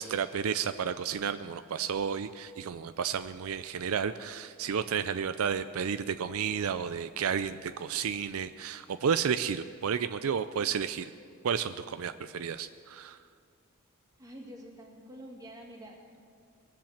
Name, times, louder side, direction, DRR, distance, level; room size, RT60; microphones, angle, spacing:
voice 1, 0.0-11.1 11.4-13.2, right 7 dB, 75° right, 11 dB, 0.4 m, -32 dB
voice 2, 14.2-16.2, equal, 15° right, -1 dB, 2.3 m, -47 dB
21.0 x 7.4 x 7.3 m, 2.2 s
head